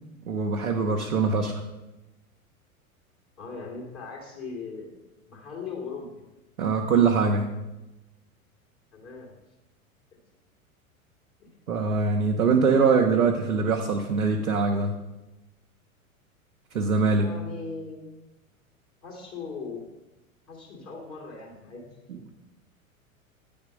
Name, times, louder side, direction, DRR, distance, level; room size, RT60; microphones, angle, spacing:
voice 1, 0.3-1.6 6.6-7.5 11.7-14.9 16.7-17.3 22.1-22.2, right 4 dB, 90° right, 1 dB, 0.7 m, -23 dB
voice 2, 3.4-4.9 5.3-6.1 8.9-9.3 11.4-11.5 17.2-18.0 19.0-19.8 20.5-21.9, left 4 dB, 30° left, -3 dB, 2.1 m, -39 dB
8.7 x 3.5 x 5.1 m, 1.0 s
figure-of-eight pair, 90°, 42 cm